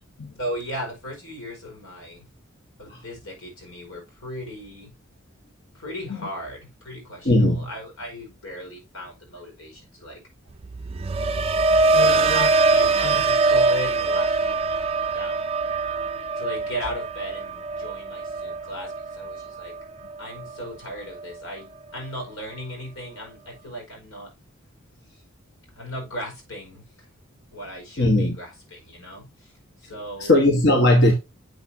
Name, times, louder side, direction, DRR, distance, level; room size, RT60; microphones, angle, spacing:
voice 1, 0.4-2.3 2.8-4.9 5.7-10.2 12.0-15.4 16.4-19.7 20.2-24.3 25.1-25.2 25.7-27.1 27.5-30.4, equal, 85° left, 4.7 m, -37 dB
voice 2, 7.2-7.7 11.9-12.5 13.0-13.2 28.0-28.4 30.2-31.1, left 1 dB, 55° left, 1.3 m, -19 dB
sound 1, 10.6-20.7 21.1-21.5, right 3 dB, 30° right, 0.4 m, -23 dB
8.0 x 6.6 x 2.7 m
head